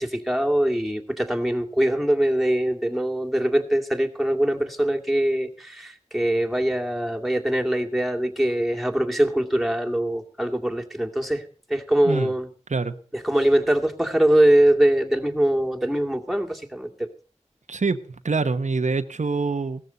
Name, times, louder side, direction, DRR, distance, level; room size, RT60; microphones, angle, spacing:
voice 1, 0.0-12.5 13.1-17.1, right 1 dB, ahead, 1 dB, 2.3 m, -22 dB
voice 2, 17.7-19.8, right 4 dB, 85° right, 8 dB, 1.0 m, -25 dB
16.5 x 13.5 x 4.0 m, 0.38 s
wide cardioid pair, 45°, 12 cm